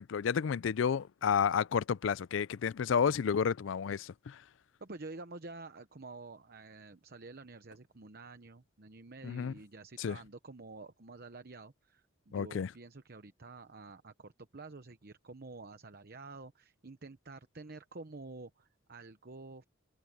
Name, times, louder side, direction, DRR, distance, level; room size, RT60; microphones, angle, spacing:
voice 1, 0.0-4.4 9.2-9.5 10.0-10.2 12.3-12.7, left 7 dB, 65° left, 0.4 m, -31 dB
voice 2, 4.8-19.6, right 3 dB, 50° right, 0.9 m, -49 dB
head